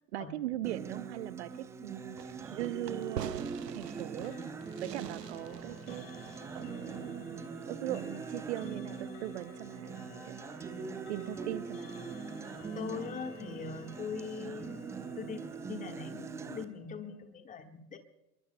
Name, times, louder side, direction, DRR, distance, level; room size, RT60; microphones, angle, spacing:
voice 1, 0.1-4.4 4.8-6.2 6.5-10.4 11.1-12.0, right 14 dB, 40° right, 15 dB, 0.7 m, -40 dB
Acoustic guitar, 0.6-16.6, right 5 dB, 5° right, 0.5 m, -42 dB
Fireworks, 2.2-7.4, right 9 dB, 75° right, 0.8 m, -46 dB
Clock, 4.2-17.3, left 8 dB, 50° left, 4.7 m, -56 dB
voice 2, 12.7-14.8 15.2-18.0, left 6 dB, 15° left, 7 dB, 1.5 m, -41 dB
27.5 x 23.0 x 2.2 m, 0.95 s
figure-of-eight pair, 100°, 49 cm